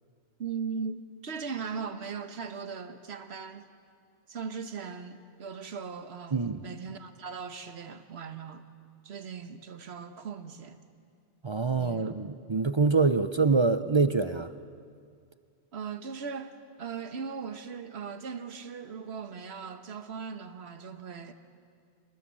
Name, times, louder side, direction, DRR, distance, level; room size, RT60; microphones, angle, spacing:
voice 1, 0.4-3.7 4.3-8.7 9.0-10.8 11.8-12.1 15.7-21.3, right 6 dB, 70° right, 9 dB, 1.5 m, -39 dB
voice 2, 6.3-6.6 11.4-14.5, right 4 dB, 35° right, 12 dB, 0.5 m, -25 dB
26.5 x 20.0 x 7.6 m, 2.2 s
omnidirectional pair, 1.1 m